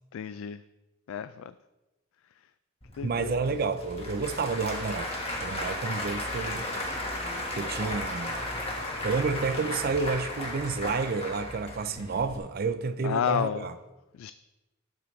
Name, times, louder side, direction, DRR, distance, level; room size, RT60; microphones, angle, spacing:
voice 1, 0.1-0.6 1.1-1.5 3.0-3.5 13.0-13.7 14.2-14.3, left 8 dB, 80° left, 0.3 m, -31 dB
Applause / Crowd, 2.8-12.4, left 1 dB, 30° left, 1.5 m, -35 dB
voice 2, 3.0-5.2 5.4-6.7 7.5-8.3 9.0-13.7, right 4 dB, 45° right, 0.4 m, -30 dB
12.0 x 7.2 x 3.2 m
head